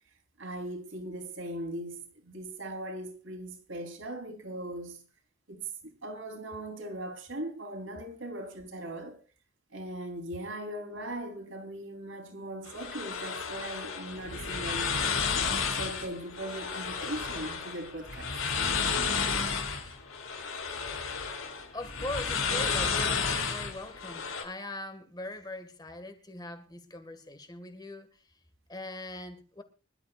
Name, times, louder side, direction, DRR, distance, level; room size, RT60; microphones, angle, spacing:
voice 1, 0.4-5.0 5.5-9.2 9.7-15.2 15.7-18.3, right 1 dB, 70° right, 3.8 m, -39 dB
sound 1, 12.7-24.4, left 5 dB, 85° left, 3.2 m, -32 dB
voice 2, 21.7-28.4 28.7-29.6, left 2 dB, 20° left, 1.9 m, -41 dB
25.5 x 12.5 x 2.5 m
head